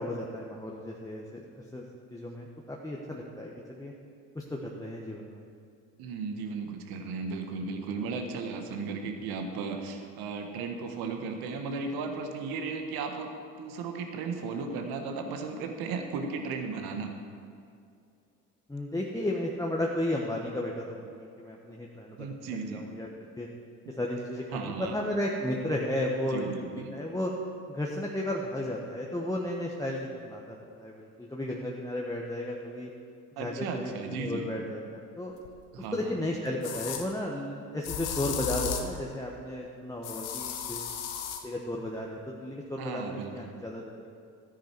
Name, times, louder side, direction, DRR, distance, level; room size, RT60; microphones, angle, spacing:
voice 1, 0.0-1.8 2.1-3.9 4.3-5.5 18.7-23.1 23.4-23.5 23.9-26.5 26.9-27.3 27.7-32.9 33.4-35.3 35.9-40.9 41.4-44.1, left 1 dB, 10° left, -2 dB, 1.3 m, -34 dB
voice 2, 6.0-13.3 13.6-17.2 22.2-22.8 23.8-24.0 24.5-24.9 26.3-26.9 33.4-34.5 35.7-36.1 42.8-43.5, right 4 dB, 65° right, 5 dB, 1.6 m, -35 dB
sound 1, 35.4-35.5 36.6-37.0 37.8-39.0 40.0-41.4, left 8 dB, 75° left, 1.1 m, -34 dB
13.0 x 9.5 x 4.7 m, 2.5 s
hypercardioid pair, 60°, 41 cm